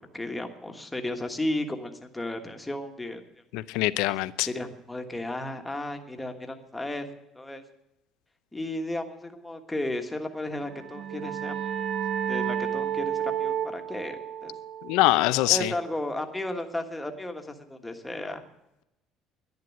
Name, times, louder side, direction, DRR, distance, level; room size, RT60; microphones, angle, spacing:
voice 1, 0.1-3.2 4.1-4.2 4.4-7.1 7.3-7.6 8.5-11.7 12.3-14.5 15.5-18.4, left 1 dB, 5° left, 5 dB, 1.5 m, -34 dB
voice 2, 3.5-4.5 14.8-15.7, left 18 dB, 90° left, 15 dB, 0.6 m, -23 dB
sound 1, 10.6-16.0, right 9 dB, 50° right, 1.0 m, -32 dB
11.0 x 10.5 x 9.4 m, 0.88 s
cardioid pair, 150°, 0 cm